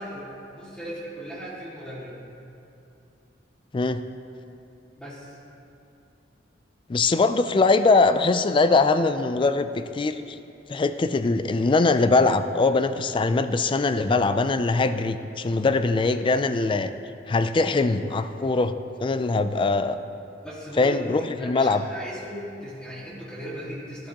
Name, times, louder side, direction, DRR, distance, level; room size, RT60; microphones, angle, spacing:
voice 1, 0.0-2.2 5.0-5.3 20.4-21.0 21.4-24.1, equal, 5° left, -6 dB, 1.9 m, -37 dB
voice 2, 6.9-10.1 10.7-16.9 17.3-18.7 19.0-20.0 20.8-21.8, left 3 dB, 30° left, 10 dB, 0.4 m, -22 dB
13.0 x 11.5 x 2.9 m, 2.7 s
head